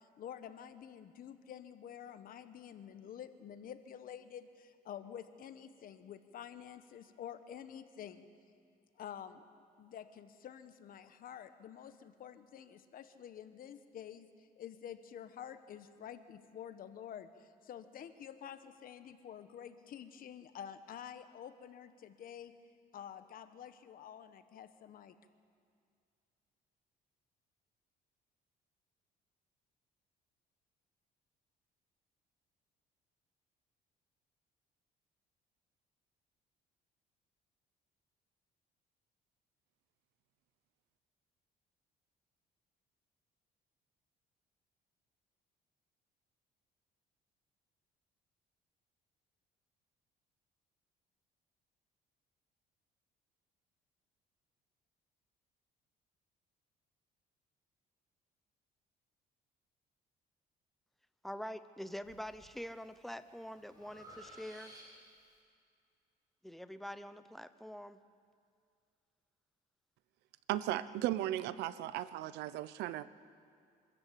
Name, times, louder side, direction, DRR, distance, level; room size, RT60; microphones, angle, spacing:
voice 1, 0.0-8.3 9.0-9.5 9.8-22.5 22.9-25.2, left 9 dB, 55° left, 10 dB, 1.2 m, -49 dB
voice 2, 61.2-64.7 66.4-68.0, equal, ahead, 12 dB, 0.8 m, -45 dB
Breathing, 62.0-62.5 63.0-65.2, equal, 20° right, 6.5 m, -56 dB
voice 3, 70.5-73.1, right 14 dB, 85° right, 15 dB, 0.7 m, -36 dB
25.0 x 13.0 x 8.5 m, 2.3 s
cardioid pair, 110°, 17 cm